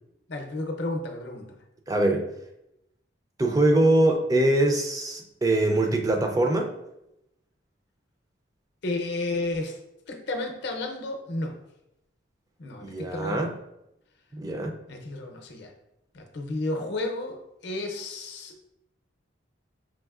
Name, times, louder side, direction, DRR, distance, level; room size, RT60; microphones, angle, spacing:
voice 1, 0.3-1.6 8.8-9.8 10.1-11.6 12.6-13.5 14.9-15.7 16.1-18.6, left 2 dB, 60° left, 3 dB, 0.6 m, -32 dB
voice 2, 1.9-2.3 3.4-6.7 12.8-13.5 14.3-14.8, right 1 dB, 20° right, 3 dB, 0.3 m, -23 dB
5.2 x 2.9 x 2.3 m, 0.85 s
head